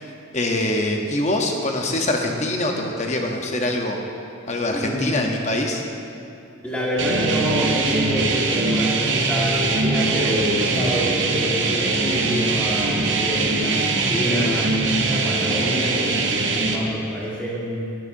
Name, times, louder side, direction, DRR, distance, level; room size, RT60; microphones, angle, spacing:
voice 1, 0.3-4.0 4.5-5.8, left 1 dB, 35° left, 2 dB, 0.8 m, -24 dB
voice 2, 4.7-5.2 6.6-17.8, equal, 5° left, -7 dB, 1.6 m, -27 dB
sound 1, 7.0-16.8, right 3 dB, 60° right, 0.8 m, -22 dB
11.5 x 11.5 x 2.7 m, 2.6 s
head